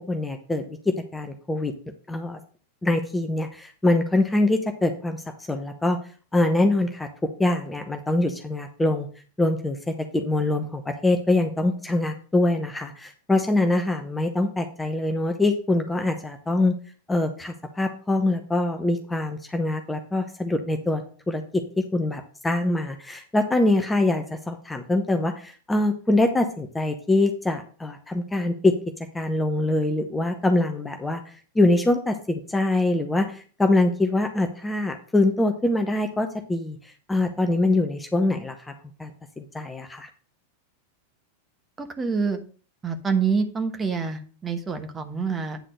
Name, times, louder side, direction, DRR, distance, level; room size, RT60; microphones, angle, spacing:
voice 1, 0.1-1.7 2.1-2.4 2.8-5.2 5.5-6.0 6.3-7.1 7.4-9.1 9.4-16.8 17.1-28.7 29.1-31.2 31.5-38.7 39.0-39.1 39.4-40.1, left 2 dB, 10° left, 5 dB, 0.9 m, -24 dB
voice 2, 41.8-42.4 42.8-45.6, right 5 dB, 15° right, 6 dB, 1.2 m, -26 dB
9.3 x 4.0 x 6.4 m, 0.41 s
figure-of-eight pair, 90°, 0 cm